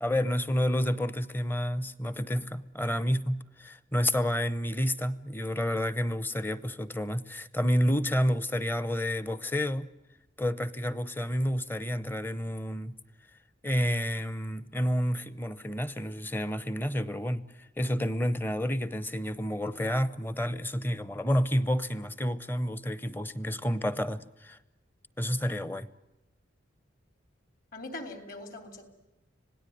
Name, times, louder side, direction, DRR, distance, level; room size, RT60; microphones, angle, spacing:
voice 1, 0.0-9.9 10.4-12.9 13.6-17.4 17.8-24.6 25.2-25.9, equal, 10° left, 0.8 m, -29 dB
voice 2, 27.7-28.9, left 2 dB, 45° left, 3.5 m, -41 dB
26.0 x 18.0 x 9.3 m
head